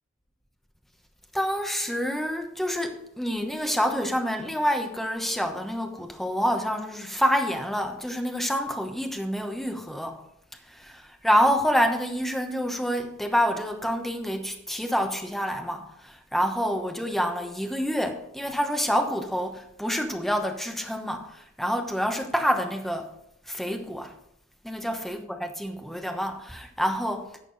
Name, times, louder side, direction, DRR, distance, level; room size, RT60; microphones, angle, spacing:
voice 1, 1.3-10.2 10.7-23.1 23.5-24.1 24.6-27.3, equal, ahead, 1.0 m, -27 dB
11.0 x 6.7 x 4.0 m
head